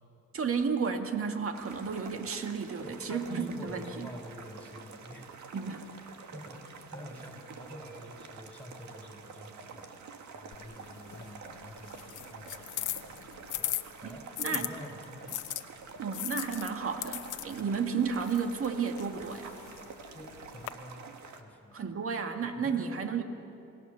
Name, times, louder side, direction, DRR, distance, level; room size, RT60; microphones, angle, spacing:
voice 1, 0.3-3.8 5.5-5.9 14.0-14.7 16.0-19.5 21.7-23.2, right 6 dB, 45° right, 5 dB, 2.0 m, -32 dB
sound 1, 1.5-21.4, right 5 dB, 70° right, 2.0 m, -48 dB
voice 2, 2.8-5.3 6.3-13.2 13.6-15.4 20.1-22.0 22.4-23.0, left 1 dB, 5° left, 2 dB, 5.6 m, -47 dB
sound 2, 10.5-14.7 15.3-20.7, left 13 dB, 80° left, 1.0 m, -39 dB
28.5 x 19.0 x 7.0 m, 2.6 s
cardioid pair, 90°, 30 cm